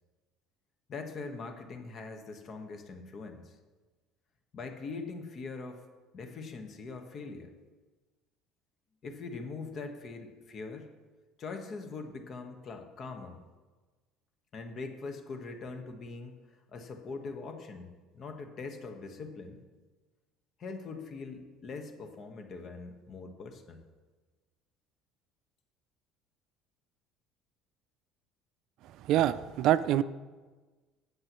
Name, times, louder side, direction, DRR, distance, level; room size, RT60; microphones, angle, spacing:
voice 1, 0.9-3.6 4.5-5.8 6.1-7.5 9.0-10.9 11.4-13.4 14.5-17.9 18.1-19.6 20.6-23.8, left 4 dB, 45° left, 5 dB, 1.4 m, -42 dB
voice 2, 29.1-30.0, right 12 dB, 65° right, 15 dB, 0.4 m, -25 dB
16.5 x 7.6 x 3.1 m, 1.3 s
cardioid pair, 115°, 0 cm